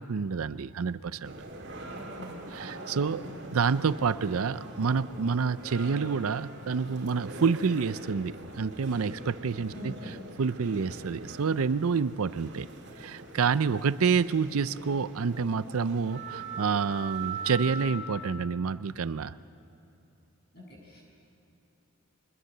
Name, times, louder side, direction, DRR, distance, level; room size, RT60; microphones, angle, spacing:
voice 1, 0.0-1.3 2.5-3.2 3.5-12.7 13.0-19.3, right 5 dB, 80° right, 15 dB, 0.5 m, -28 dB
sound 1, 1.2-18.4, right 2 dB, 50° right, 2.4 m, -42 dB
voice 2, 2.0-2.4 3.2-3.4 9.7-10.1 20.5-21.0, left 1 dB, 45° left, -3 dB, 7.6 m, -44 dB
25.0 x 21.0 x 6.7 m, 2.9 s
head